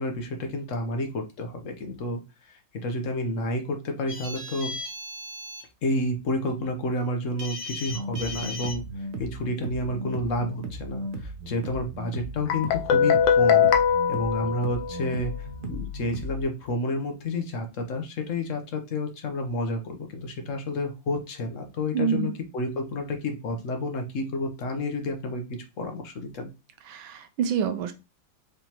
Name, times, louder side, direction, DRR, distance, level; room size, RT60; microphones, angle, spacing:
voice 1, 0.0-2.2 2.5-4.8 5.8-13.8 14.1-26.5, left 1 dB, 50° left, 4 dB, 1.0 m, -30 dB
sound 1, 4.1-5.6 7.4-8.7, left 2 dB, 35° right, 0.9 m, -36 dB
sound 2, 7.9-16.4, right 1 dB, 60° right, 0.9 m, -37 dB
Guitar, 12.5-15.3, left 7 dB, 70° left, 1.3 m, -22 dB
voice 2, 21.9-22.3 26.9-27.9, right 8 dB, 80° right, 9 dB, 1.5 m, -27 dB
5.0 x 3.4 x 2.9 m, 0.26 s
omnidirectional pair, 2.2 m